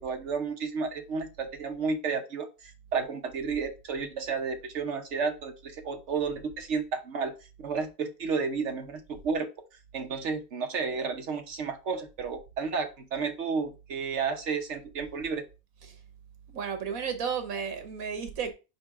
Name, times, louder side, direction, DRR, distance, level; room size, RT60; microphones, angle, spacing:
voice 1, 0.0-7.3 7.6-9.5 9.9-15.4, right 5 dB, 60° right, 1.2 m, -32 dB
voice 2, 16.5-18.5, right 6 dB, 85° right, 1.5 m, -33 dB
4.6 x 4.3 x 4.7 m
omnidirectional pair, 1.4 m